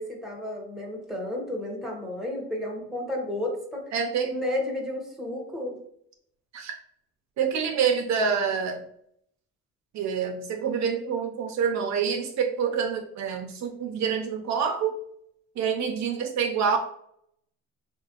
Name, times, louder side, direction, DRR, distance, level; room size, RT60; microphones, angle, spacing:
voice 1, 0.0-3.8 4.2-5.8, left 1 dB, ahead, -1 dB, 1.1 m, -32 dB
voice 2, 3.9-4.3 6.5-6.7 7.4-8.8 9.9-15.0 15.6-16.8, right 6 dB, 65° right, 3 dB, 0.6 m, -27 dB
3.5 x 2.4 x 2.8 m, 0.69 s
cardioid pair, 90°, 30 cm